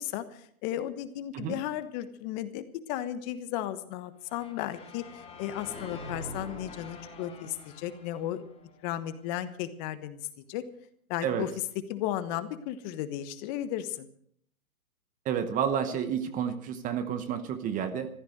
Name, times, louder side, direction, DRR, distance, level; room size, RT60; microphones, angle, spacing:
voice 1, 0.0-8.4 8.8-10.6 11.1-11.5 11.9-14.1, left 12 dB, 30° left, 12 dB, 1.3 m, -35 dB
sound 1, 4.2-9.3, left 2 dB, 15° left, 3.3 m, -45 dB
voice 2, 15.3-18.1, right 8 dB, 20° right, 11 dB, 0.9 m, -30 dB
15.0 x 13.0 x 6.5 m, 0.63 s
hypercardioid pair, 140°, 43 cm